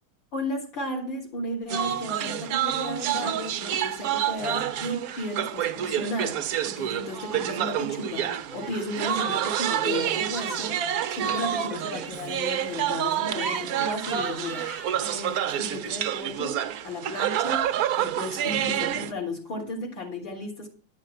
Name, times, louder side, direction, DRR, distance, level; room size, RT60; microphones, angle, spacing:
voice 1, 0.3-20.7, left 1 dB, 60° left, -2 dB, 4.4 m, -34 dB
sound 1, 1.7-19.1, right 10 dB, 75° right, 0.8 m, -28 dB
Laughter, 2.4-2.9 3.1-3.7 4.1-5.0 6.3-7.8 8.5-15.4, right 4 dB, 60° right, 0.4 m, -41 dB
11.5 x 6.7 x 7.8 m, 0.38 s
omnidirectional pair, 2.4 m